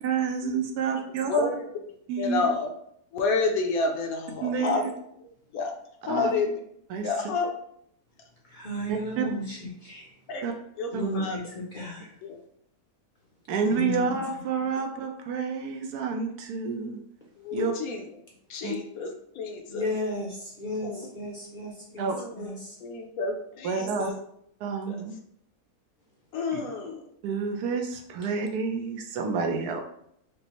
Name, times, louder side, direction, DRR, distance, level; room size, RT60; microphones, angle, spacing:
voice 1, 0.0-1.5 2.1-2.4 4.4-4.9 6.1-6.3 6.9-7.1 8.9-9.3 10.4-10.5 10.9-11.0 13.5-17.0 17.5-17.7 18.6-18.7 22.0-22.2 23.6-24.1 24.6-25.2 26.5-26.6 27.2-29.8, right 5 dB, 85° right, 3 dB, 1.2 m, -29 dB
voice 2, 1.3-1.8 2.2-2.7 3.1-4.9 5.5-5.7 6.1-6.6 7.0-7.5 10.3-10.4 10.8-11.4 12.2-12.4 17.4-18.0 18.5-19.9 20.8-21.1 22.1-22.5 22.8-24.1 24.9-25.0 26.3-27.0, left 4 dB, 75° left, 3 dB, 1.1 m, -29 dB
voice 3, 8.5-10.1 10.9-12.1 13.7-14.2 19.7-22.1 22.4-22.8 24.0-24.1, equal, 45° left, -3 dB, 0.6 m, -34 dB
5.1 x 2.0 x 2.9 m, 0.71 s
omnidirectional pair, 1.6 m